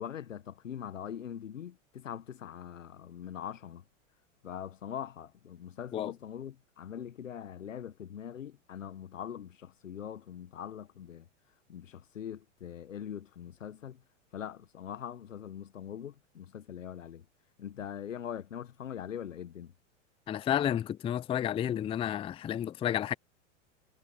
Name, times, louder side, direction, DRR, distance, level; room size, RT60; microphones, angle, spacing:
voice 1, 0.0-3.8 4.4-11.3 11.7-14.0 14.3-17.2 17.6-19.7, left 9 dB, 85° left, 1.5 m, -42 dB
voice 2, 20.3-23.1, left 10 dB, 15° left, 0.5 m, -31 dB
hypercardioid pair, 100°, 38 cm